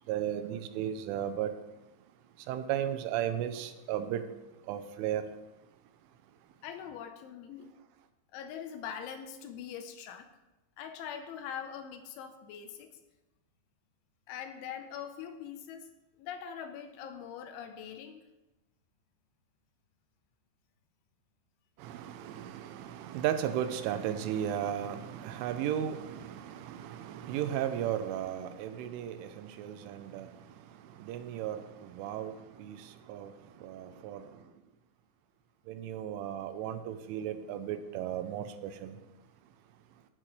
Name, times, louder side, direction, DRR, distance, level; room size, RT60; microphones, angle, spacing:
voice 1, 0.1-1.5 2.5-4.2 4.7-5.3 21.8-30.3 31.0-33.3 33.6-34.3 35.7-39.0, right 10 dB, 85° right, 3.3 m, -35 dB
voice 2, 6.6-7.7 8.3-10.3 10.8-12.9 14.3-15.9 16.2-18.2, left 8 dB, 80° left, 3.3 m, -42 dB
14.5 x 12.0 x 3.3 m
omnidirectional pair, 5.6 m